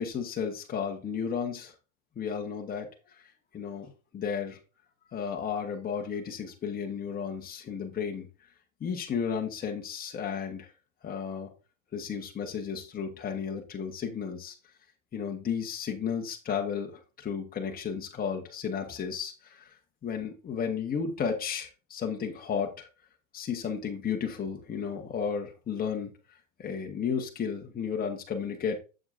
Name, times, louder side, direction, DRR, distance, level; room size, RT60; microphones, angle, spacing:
voice 1, 0.0-1.7 2.1-2.9 3.5-4.6 5.1-8.3 8.8-10.7 11.0-11.5 11.9-14.5 15.1-19.7 20.0-22.9 23.3-26.1 26.6-28.8, left 6 dB, 20° left, 1 dB, 1.5 m, -33 dB
7.7 x 7.7 x 2.7 m, 0.32 s
hypercardioid pair, 115°, 41 cm